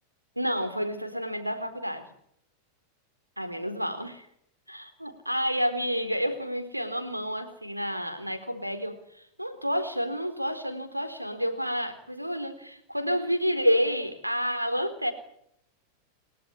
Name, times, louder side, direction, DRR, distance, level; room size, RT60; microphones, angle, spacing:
voice 1, 0.4-2.1 3.4-4.3 4.7-15.1, equal, 90° right, 8 dB, 4.2 m, -29 dB
29.5 x 17.5 x 10.0 m, 0.74 s
figure-of-eight pair, 90°, 0 cm